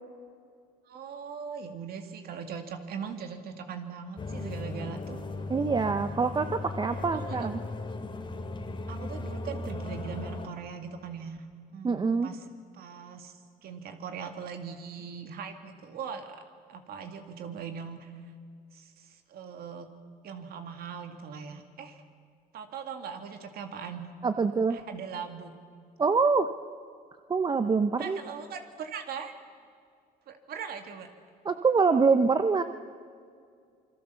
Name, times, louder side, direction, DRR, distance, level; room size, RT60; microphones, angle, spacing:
voice 1, 0.8-5.2 7.1-7.5 8.9-11.5 11.7-13.3 13.6-16.4 16.7-18.1 18.7-19.9 20.2-22.0 22.5-24.1 24.7-25.5 28.0-29.3 30.3-31.1, right 6 dB, 65° right, 6 dB, 2.3 m, -40 dB
sound 1, 4.2-10.5, left 2 dB, 30° left, 2.6 m, -37 dB
voice 2, 5.5-7.6 11.8-12.3 24.2-24.8 26.0-26.5 27.3-28.2 31.4-32.6, right 4 dB, 25° right, 9 dB, 0.8 m, -25 dB
27.5 x 22.0 x 7.0 m, 2.2 s
cardioid pair, 110°, 17 cm